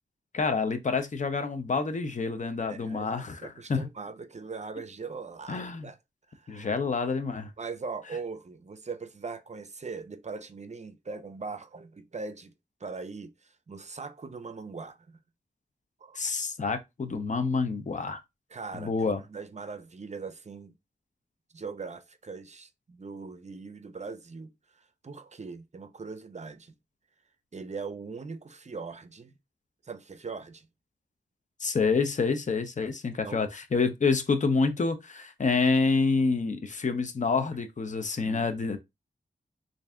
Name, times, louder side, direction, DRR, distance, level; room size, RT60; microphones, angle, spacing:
voice 1, 0.3-3.9 5.5-5.9 6.5-7.5 16.2-18.2 18.7-19.2 31.6-38.8, left 4 dB, 40° left, 0.6 m, -28 dB
voice 2, 2.7-6.0 6.3-6.7 7.6-12.5 12.8-15.2 16.0-16.2 18.5-20.7 21.5-26.8 27.5-29.4 29.8-30.7 33.2-33.4 38.2-38.5, right 4 dB, 40° right, 0.5 m, -41 dB
3.3 x 2.6 x 3.5 m
wide cardioid pair, 95°, 19 cm